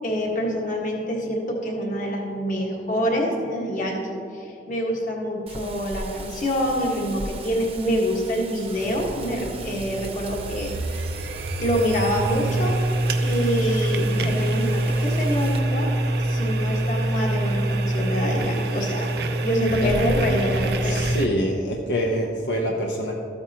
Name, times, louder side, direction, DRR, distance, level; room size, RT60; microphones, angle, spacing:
voice 1, 0.0-4.0 4.3-11.0 11.6-12.8 13.2-15.9 16.2-19.1 19.4-21.0, equal, 45° left, -1 dB, 1.6 m, -26 dB
Wind, 5.5-15.6, right 3 dB, 35° right, 0.8 m, -40 dB
sound 1, 8.8-21.3, right 1 dB, 60° right, 0.5 m, -25 dB
voice 2, 20.8-23.2, equal, 75° left, -1 dB, 0.8 m, -25 dB
13.5 x 8.6 x 2.9 m, 2.5 s
head